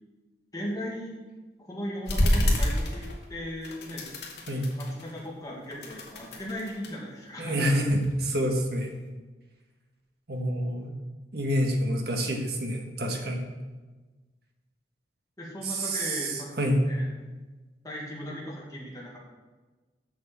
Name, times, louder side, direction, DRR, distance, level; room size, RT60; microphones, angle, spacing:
voice 1, 0.5-1.2 1.6-4.1 4.8-7.7 15.4-16.5 16.9-17.1 17.8-19.2, equal, 20° left, -4 dB, 2.0 m, -37 dB
sound 1, 2.1-3.4 3.6-5.3 5.6-6.9 7.5-8.7, equal, 70° left, 2.1 m, -28 dB
voice 2, 7.4-9.0 10.3-10.9 11.3-13.4 15.6-16.8, equal, 60° right, 2 dB, 1.6 m, -27 dB
7.9 x 6.6 x 7.5 m, 1.3 s
head